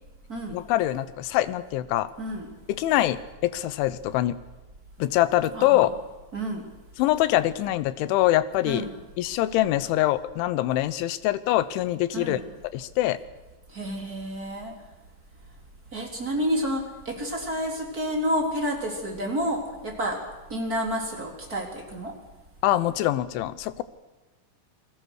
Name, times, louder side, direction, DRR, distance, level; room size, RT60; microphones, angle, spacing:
voice 1, 0.5-2.1 2.7-4.4 5.0-5.9 7.0-8.9 9.2-12.4 12.7-13.2 22.6-23.8, left 14 dB, 85° left, 15 dB, 3.4 m, -24 dB
voice 2, 2.2-2.5 5.5-5.9 6.3-6.6 8.7-8.9 12.1-12.4 13.7-14.7 15.9-20.2 20.5-22.1, equal, 20° right, 1 dB, 3.6 m, -29 dB
29.0 x 21.5 x 6.4 m, 1.1 s
omnidirectional pair, 5.4 m